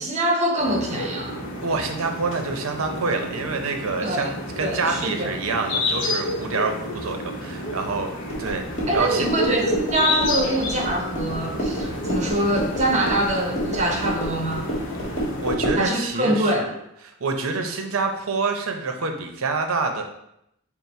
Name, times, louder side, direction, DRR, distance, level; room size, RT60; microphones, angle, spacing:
voice 1, 0.0-1.4 4.0-4.3 4.6-5.3 8.9-14.6 15.8-16.7, right 1 dB, 35° right, 1 dB, 0.8 m, -24 dB
sound 1, 0.6-15.6, left 1 dB, 60° left, 0.8 m, -30 dB
voice 2, 1.6-9.3 15.2-16.7 17.2-20.0, right 4 dB, 80° right, 5 dB, 0.6 m, -27 dB
sound 2, 8.3-15.9, right 1 dB, 35° left, 1.3 m, -30 dB
5.6 x 2.1 x 4.2 m, 0.79 s
head